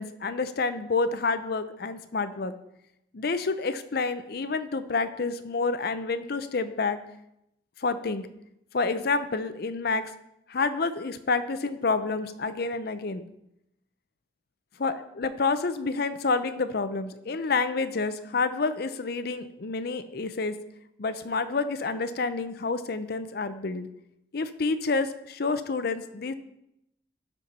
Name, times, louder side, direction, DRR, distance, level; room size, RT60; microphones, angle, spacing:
voice 1, 0.0-2.5 3.1-7.0 7.8-8.3 8.7-10.1 10.5-13.3 14.8-20.6 21.0-23.9 24.3-26.3, left 4 dB, 55° left, 11 dB, 0.6 m, -28 dB
12.5 x 4.4 x 5.5 m, 0.82 s
head